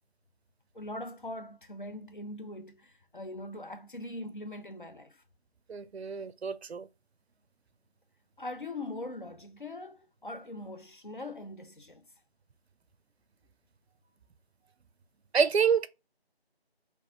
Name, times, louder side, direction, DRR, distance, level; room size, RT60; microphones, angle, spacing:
voice 1, 0.7-5.2 8.4-12.1, left 1 dB, 50° left, 0.5 m, -41 dB
voice 2, 5.7-6.9 15.3-15.9, right 6 dB, 80° right, 0.5 m, -27 dB
3.5 x 2.9 x 2.8 m
figure-of-eight pair, 180°, 31 cm